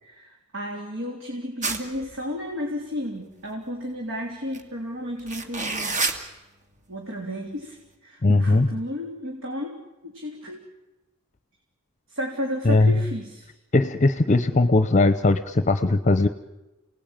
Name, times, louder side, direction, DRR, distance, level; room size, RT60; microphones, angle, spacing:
voice 1, 0.0-6.0 6.9-7.8 8.0-9.8 10.0-10.6 12.1-13.5, equal, 60° right, 0 dB, 3.6 m, -33 dB
sound 1, 1.6-2.1 4.5-4.6 5.2-6.2, right 3 dB, 35° right, 2.3 m, -27 dB
voice 2, 8.2-8.7 12.7-13.0 13.7-16.3, left 2 dB, 35° left, 11 dB, 0.8 m, -19 dB
29.5 x 19.0 x 9.1 m, 1.1 s
head